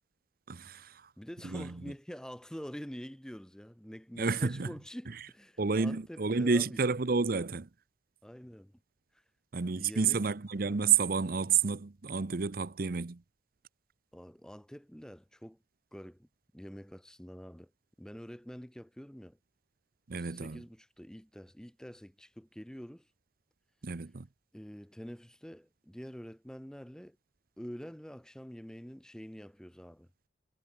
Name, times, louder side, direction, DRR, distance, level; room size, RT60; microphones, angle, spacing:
voice 1, 0.5-1.1 1.4-1.7 4.2-4.7 5.6-7.7 9.5-13.2 20.1-20.6 23.8-24.3, right 5 dB, 50° right, 0.7 m, -30 dB
voice 2, 1.2-6.8 8.2-8.8 9.1-9.2 9.8-10.2 14.1-15.6 15.9-16.3 16.5-17.7 18.0-19.4 20.1-23.1 24.5-27.2 27.6-30.1, equal, 5° left, 0.7 m, -46 dB
head